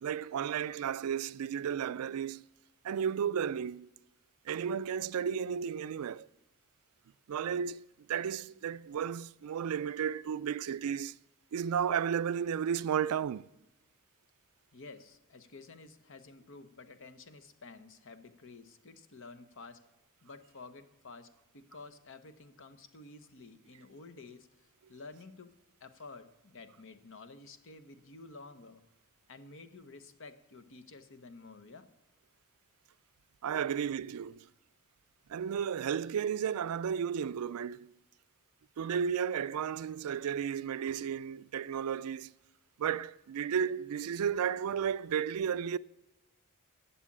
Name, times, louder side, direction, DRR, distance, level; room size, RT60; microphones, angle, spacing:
voice 1, 0.0-2.4 2.8-3.9 4.5-6.3 7.3-7.8 8.1-11.2 11.5-13.4 33.4-34.4 35.3-37.9 38.8-42.3 42.8-45.8, right 8 dB, 80° right, 0.4 m, -33 dB
voice 2, 14.7-19.9 20.2-24.5 24.9-25.5 25.8-28.8 29.3-31.9 33.5-33.6, left 3 dB, 60° left, 1.0 m, -51 dB
11.0 x 7.3 x 8.6 m
head